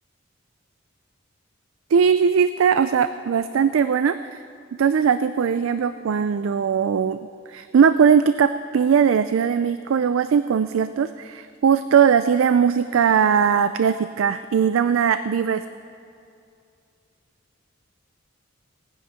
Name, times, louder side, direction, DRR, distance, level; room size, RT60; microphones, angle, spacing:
voice 1, 1.9-4.4 4.8-7.2 7.5-15.6, right 7 dB, 80° right, 12 dB, 0.4 m, -19 dB
18.0 x 9.5 x 5.7 m, 2.5 s
head